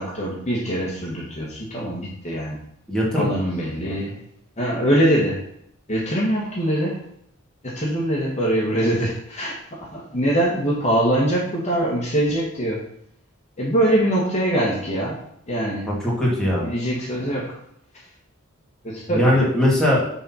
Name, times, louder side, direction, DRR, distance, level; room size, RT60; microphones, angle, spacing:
voice 1, 0.0-2.6 3.1-4.2 4.6-5.4 5.9-7.0 7.6-12.8 13.6-15.2 15.5-15.9 16.4-17.6 18.8-19.3, right 1 dB, 35° left, -3 dB, 1.5 m, -23 dB
voice 2, 2.9-3.3 15.9-16.7 19.1-20.0, left 1 dB, 5° left, -6 dB, 2.2 m, -20 dB
6.7 x 4.2 x 5.7 m, 0.72 s
head